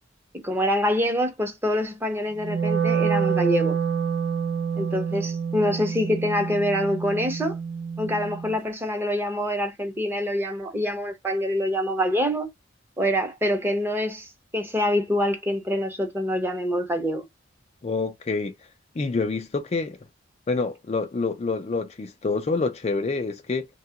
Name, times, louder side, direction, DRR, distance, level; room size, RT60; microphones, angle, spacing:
voice 1, 0.4-3.8 4.8-7.6 8.0-12.5 13.0-17.2, equal, 10° right, 0.8 m, -25 dB
Wind instrument woodwind instrument, 2.4-8.6, right 6 dB, 85° right, 0.7 m, -27 dB
voice 2, 17.8-18.5 19.0-20.0 20.5-23.7, left 3 dB, 35° left, 0.4 m, -27 dB
2.9 x 2.3 x 2.7 m
head